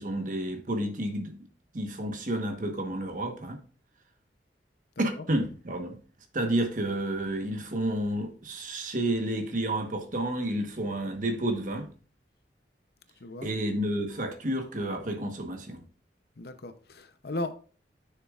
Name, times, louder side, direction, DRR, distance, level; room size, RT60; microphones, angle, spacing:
voice 1, 0.0-1.3 1.7-3.6 5.0-6.0 6.3-11.9 13.4-15.8, right 1 dB, 45° right, 1.2 m, -30 dB
voice 2, 16.4-17.5, left 2 dB, 60° left, 0.7 m, -36 dB
10.0 x 6.7 x 2.4 m
head